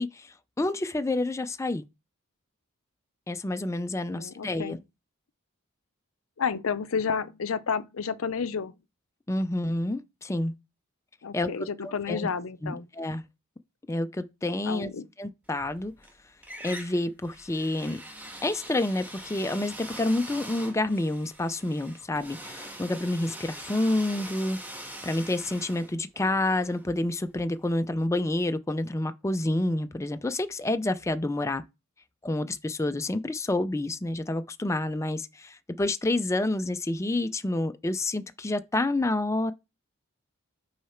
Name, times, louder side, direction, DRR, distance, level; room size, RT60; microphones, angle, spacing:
voice 1, 0.0-1.8 3.3-4.8 9.3-10.5 11.3-11.5 11.8-12.3 12.6-13.2 13.9-14.9 15.2-15.9 16.6-18.0 18.4-31.6 32.2-39.5, left 2 dB, 15° left, 0.4 m, -29 dB
voice 2, 4.1-4.8 6.4-8.7 11.2-12.9 14.7-15.1, left 6 dB, 65° left, 0.6 m, -31 dB
sound 1, 15.5-16.1 16.4-27.3, right 1 dB, 10° right, 1.8 m, -43 dB
6.2 x 4.7 x 4.3 m
head